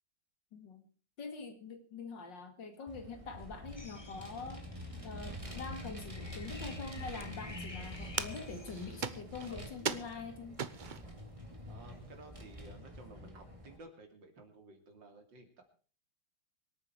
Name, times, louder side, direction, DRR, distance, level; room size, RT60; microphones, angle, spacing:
voice 1, 0.5-0.9 1.2-4.6 5.0-10.6, left 4 dB, 70° left, 7 dB, 2.8 m, -44 dB
Vehicle, 2.9-13.8, equal, 15° right, 2.6 m, -47 dB
sound 1, 3.8-9.2, left 3 dB, 25° left, 0.6 m, -52 dB
sound 2, 6.5-11.1 11.8-11.9 12.1-12.6, right 6 dB, 85° right, 0.4 m, -41 dB
voice 2, 11.7-15.6, right 2 dB, 70° right, 5 dB, 3.5 m, -54 dB
25.0 x 9.0 x 4.6 m, 0.40 s
omnidirectional pair, 2.1 m